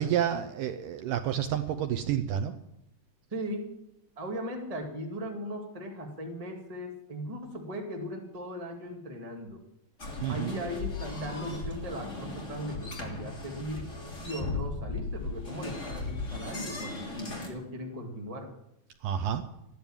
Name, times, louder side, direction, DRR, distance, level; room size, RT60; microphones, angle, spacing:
voice 1, 0.0-2.6 10.2-10.5 19.0-19.4, right 9 dB, 80° right, 8 dB, 2.0 m, -29 dB
voice 2, 3.3-3.7 4.2-9.6 10.3-13.9 14.2-18.5, equal, 15° right, 0 dB, 1.2 m, -38 dB
sound 1, 10.0-17.5, left 3 dB, 20° left, 2.8 m, -37 dB
14.0 x 11.0 x 8.9 m, 0.83 s
omnidirectional pair, 4.6 m